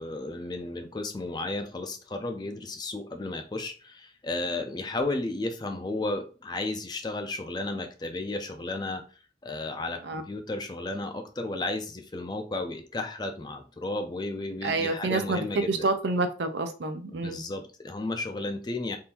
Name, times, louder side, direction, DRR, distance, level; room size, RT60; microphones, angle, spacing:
voice 1, 0.0-9.0 9.4-15.9 17.1-19.0, left 2 dB, 25° left, 0.4 m, -33 dB
voice 2, 14.6-15.4 15.7-17.4, right 3 dB, 75° right, 0.5 m, -28 dB
3.6 x 2.5 x 2.8 m
head